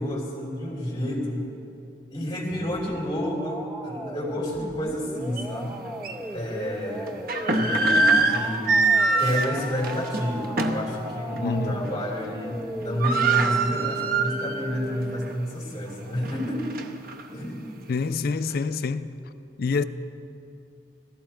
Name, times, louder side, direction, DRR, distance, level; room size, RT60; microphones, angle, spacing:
voice 1, 0.0-1.5 2.1-5.8 6.3-7.2 7.5-8.8 9.2-16.7 17.3-17.6, equal, 25° left, 3.2 m, -30 dB
sound 1, 2.5-15.3, equal, 10° right, 0.5 m, -37 dB
sound 2, 5.4-5.5 6.0-6.2 7.1-10.9 11.3-11.5 11.8-12.3 12.5-12.6 12.8-14.8 15.2-15.3 15.9-17.2, right 3 dB, 55° right, 0.8 m, -24 dB
voice 2, 11.4-11.8 17.9-19.1 19.6-19.8, left 4 dB, 55° left, 0.4 m, -26 dB
16.0 x 14.0 x 4.4 m
head